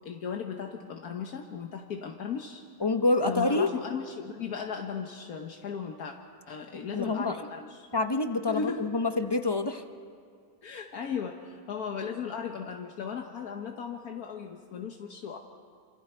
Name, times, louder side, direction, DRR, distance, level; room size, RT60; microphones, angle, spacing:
voice 1, 0.0-2.6 3.2-6.1 6.5-7.9 8.5-8.9 10.6-15.4, left 6 dB, 70° left, 3 dB, 1.5 m, -36 dB
voice 2, 2.8-3.7 6.9-7.4 7.9-9.8, left 2 dB, 30° left, 7 dB, 0.4 m, -27 dB
28.5 x 26.0 x 4.5 m, 2.3 s
omnidirectional pair, 1.7 m